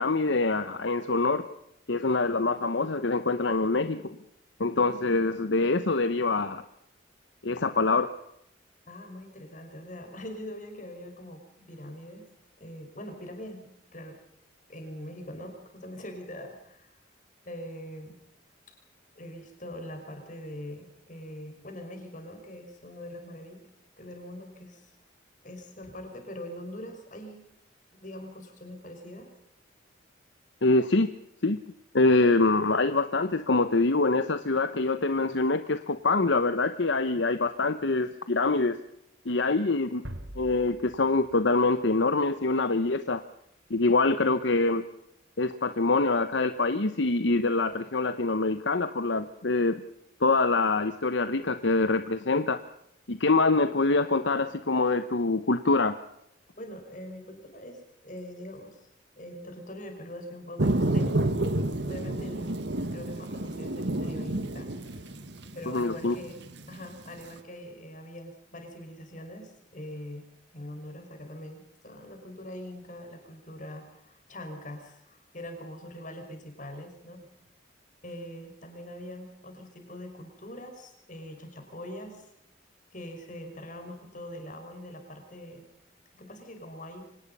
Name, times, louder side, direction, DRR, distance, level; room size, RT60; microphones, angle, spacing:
voice 1, 0.0-1.5 1.9-4.1 4.6-6.6 7.4-8.1 30.6-31.1 31.4-31.6 31.9-38.8 39.2-40.0 40.4-43.2 43.7-44.8 45.4-49.8 50.2-52.6 53.1-56.0 65.7-66.2, left 3 dB, 70° left, 11 dB, 1.0 m, -25 dB
voice 2, 8.9-12.3 12.6-14.2 14.7-17.0 17.5-18.2 19.2-23.7 24.0-24.9 25.4-27.4 27.9-29.3 44.3-44.4 56.5-58.8 59.2-61.2 61.5-62.6 62.9-65.1 65.5-70.2 70.5-77.5 78.0-82.3 82.9-85.7 86.1-87.1, left 1 dB, 40° left, 5 dB, 5.5 m, -43 dB
sound 1, 40.0-42.9, right 1 dB, 85° right, 3.0 m, -45 dB
sound 2, 60.6-67.3, right 1 dB, 60° right, 1.6 m, -30 dB
25.0 x 19.0 x 5.5 m, 0.76 s
head